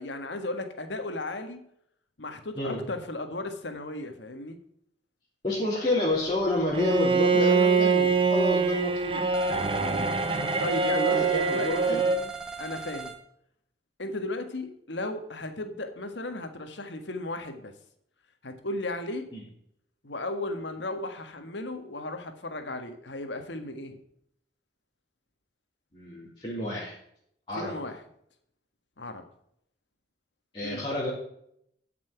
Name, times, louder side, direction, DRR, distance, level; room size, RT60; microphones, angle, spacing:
voice 1, 0.0-1.6 2.2-4.6 9.8-10.1 10.6-12.0 12.6-13.1 14.0-17.7 18.4-19.3 20.0-24.0 27.6-28.0 29.0-29.2 30.6-30.8, left 2 dB, 80° left, 7 dB, 1.6 m, -35 dB
voice 2, 5.4-9.2 10.9-12.0 19.3-19.4 25.9-27.0 27.5-27.7 30.5-31.1, left 2 dB, 25° left, -10 dB, 3.4 m, -29 dB
Bowed string instrument, 6.7-12.3, right 4 dB, 30° right, 0.8 m, -24 dB
sound 1, 9.3-13.2, right 5 dB, 5° right, 1.2 m, -39 dB
12.5 x 6.0 x 5.9 m, 0.71 s
head